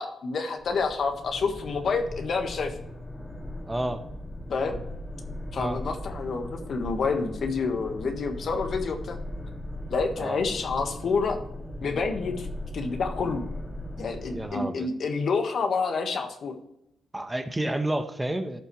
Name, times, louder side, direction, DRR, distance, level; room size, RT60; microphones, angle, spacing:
voice 1, 0.0-2.7 4.5-4.8 5.5-9.2 9.9-11.4 11.8-12.5 12.7-13.4 14.0-16.6, left 4 dB, 60° left, 5 dB, 1.5 m, -28 dB
sound 1, 0.6-14.5, left 1 dB, 15° left, 2.3 m, -38 dB
voice 2, 3.7-4.0 5.6-5.8 10.2-10.4 14.3-14.9 17.1-18.6, right 1 dB, 15° right, 8 dB, 1.1 m, -30 dB
14.0 x 5.6 x 3.2 m, 0.80 s
supercardioid pair, 60°, 0 cm